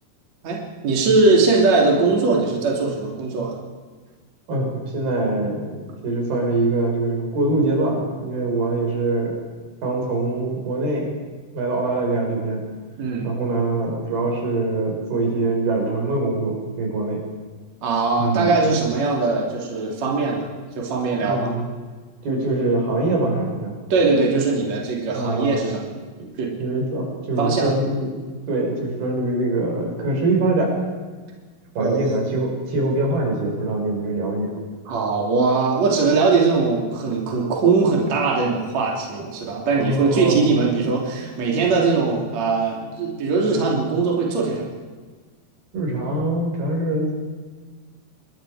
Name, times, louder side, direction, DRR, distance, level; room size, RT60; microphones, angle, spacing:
voice 1, 0.4-3.6 13.0-13.3 17.8-20.5 20.8-21.5 23.9-26.0 26.4-26.5 27.4-27.7 31.8-32.2 34.9-44.7, right 4 dB, 50° right, -2 dB, 4.0 m, -20 dB
voice 2, 4.5-9.4 9.8-11.1 11.5-12.6 13.2-17.2 18.2-18.5 21.2-21.7 22.2-23.8 25.1-25.6 26.2-26.3 26.6-28.1 28.5-30.8 31.8-34.6 39.7-40.4 41.2-41.3 45.7-47.1, right 2 dB, 90° right, 0 dB, 7.3 m, -23 dB
26.0 x 21.0 x 5.0 m, 1.4 s
omnidirectional pair, 4.3 m